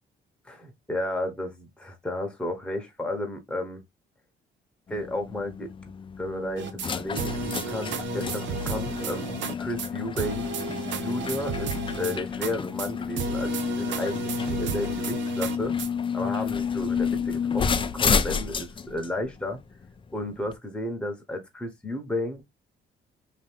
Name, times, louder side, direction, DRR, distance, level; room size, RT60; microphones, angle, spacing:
voice 1, 0.4-3.8 4.9-5.7 6.2-9.3 9.6-10.5 10.9-15.8 16.1-19.6 20.1-22.4, left 1 dB, 5° left, 1.0 m, -33 dB
sound 1, 4.9-20.6, left 6 dB, 25° left, 0.4 m, -30 dB
sound 2, 6.6-6.9 7.2-9.5 9.8-9.9 10.2-12.5 12.8-12.9 13.2-15.9, right 6 dB, 65° right, 0.6 m, -33 dB
2.8 x 2.6 x 3.4 m
cardioid pair, 90°, 20 cm